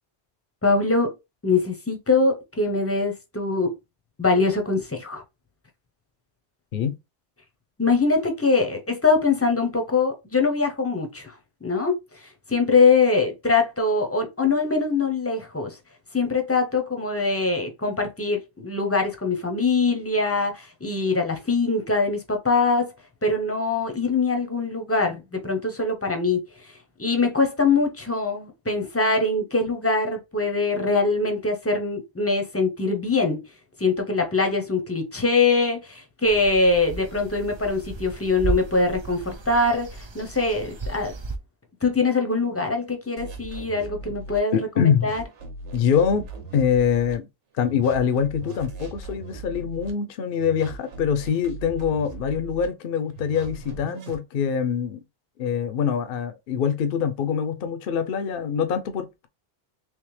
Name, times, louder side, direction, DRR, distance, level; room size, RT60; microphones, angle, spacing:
voice 1, 0.6-1.2 1.4-3.7 4.2-5.2 7.8-11.3 11.6-11.9 12.2-15.8 16.1-22.9 23.2-26.7 27.0-33.4 33.8-41.1 41.8-45.2, left 3 dB, 15° left, 0.6 m, -23 dB
sound 1, 36.2-41.4, right 3 dB, 50° right, 0.3 m, -34 dB
sound 2, 43.2-44.4 44.9-47.1 47.6-49.9 50.4-52.7 53.2-54.2, right 3 dB, 85° right, 1.2 m, -39 dB
voice 2, 44.5-45.1 45.7-46.2 46.5-47.3 47.6-55.0 55.4-59.3, left 7 dB, 60° left, 0.7 m, -24 dB
3.4 x 3.2 x 3.1 m
omnidirectional pair, 1.2 m